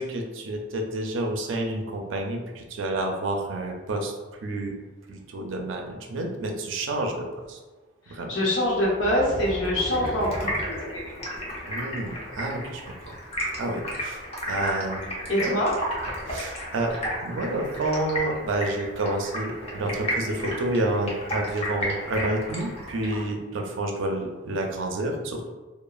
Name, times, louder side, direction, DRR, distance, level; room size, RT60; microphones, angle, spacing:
voice 1, 0.0-4.7 5.1-7.6 8.1-8.3 11.7-13.1 13.6-15.1 15.4-15.6 16.3-17.0 17.2-25.5, right 1 dB, 85° right, 2 dB, 0.4 m, -29 dB
voice 2, 8.1-11.1 15.3-15.8, left 1 dB, 75° left, -5 dB, 0.9 m, -25 dB
sound 1, 8.6-11.6, right 1 dB, 30° right, 0.4 m, -36 dB
Stream, 9.8-23.3, equal, 35° left, 0.6 m, -33 dB
3.0 x 2.1 x 2.3 m, 1.3 s
head